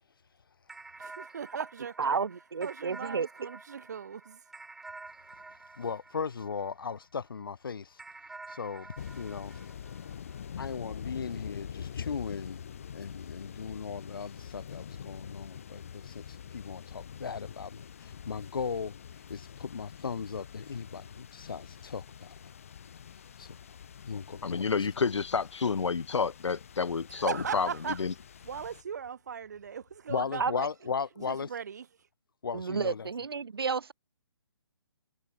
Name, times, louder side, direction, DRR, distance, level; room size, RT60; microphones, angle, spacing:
sound 1, 0.7-7.3 8.0-10.7, right 3 dB, ahead, 1.6 m, -49 dB
voice 1, 1.0-2.2 2.6-4.8 27.1-28.1 28.4-30.7 31.2-32.1, right 7 dB, 35° right, 6.7 m, -39 dB
voice 2, 2.0-3.3 30.4-30.5 32.5-33.9, right 5 dB, 55° right, 2.9 m, -31 dB
voice 3, 5.8-8.0 8.5-9.6 10.6-12.6 12.9-18.9 19.3-22.5 23.4-23.6 24.1-24.6 30.1-31.5 32.4-33.1, left 5 dB, 50° left, 4.5 m, -37 dB
sound 2, 9.0-28.8, left 8 dB, 30° left, 1.8 m, -45 dB
voice 4, 24.4-27.7 28.0-28.1, left 5 dB, 85° left, 1.3 m, -29 dB
hypercardioid pair, 180°, 15 cm